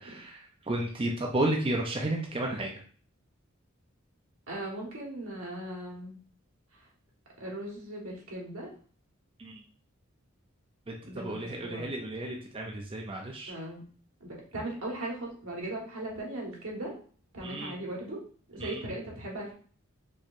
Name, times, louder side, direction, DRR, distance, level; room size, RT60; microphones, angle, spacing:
voice 1, 0.0-2.8 9.4-9.6 10.9-13.5 17.4-17.7 18.6-18.8, right 1 dB, 25° right, 1 dB, 0.5 m, -33 dB
voice 2, 4.5-6.2 7.4-8.7 11.0-11.9 13.5-13.8 14.2-16.9 17.3-18.2 18.5-19.5, right 1 dB, 85° right, -2 dB, 1.4 m, -38 dB
4.3 x 3.1 x 2.5 m, 0.44 s
head